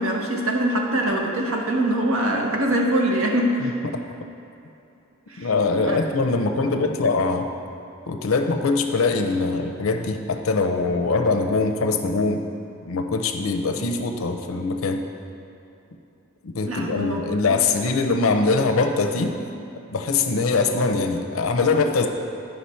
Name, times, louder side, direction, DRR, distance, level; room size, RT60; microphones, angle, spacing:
voice 1, 0.0-3.7 5.3-5.5 5.8-6.0 16.7-17.2 17.5-17.6, right 1 dB, 85° right, 1 dB, 1.1 m, -23 dB
voice 2, 3.6-4.0 5.4-7.5 8.1-12.4 12.9-15.0 16.4-19.4 19.9-22.1, left 3 dB, 90° left, 4 dB, 0.6 m, -22 dB
9.7 x 5.8 x 4.3 m, 2.7 s
head